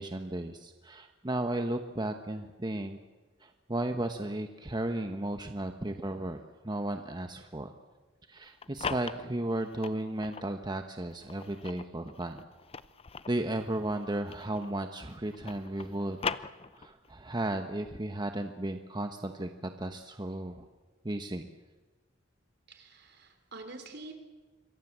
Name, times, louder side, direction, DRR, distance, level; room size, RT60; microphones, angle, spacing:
voice 1, 0.0-3.0 3.4-6.4 6.6-7.7 8.3-12.4 13.3-16.3 16.7-19.5 19.8-20.7 21.0-21.5, right 1 dB, 25° right, 6 dB, 1.1 m, -34 dB
sound 1, 8.4-10.5 11.1-14.8 15.1-17.1, left 5 dB, 30° left, 0.7 m, -40 dB
voice 2, 22.7-24.1, right 2 dB, 60° right, 7 dB, 3.7 m, -46 dB
26.5 x 23.0 x 7.5 m, 1.3 s
head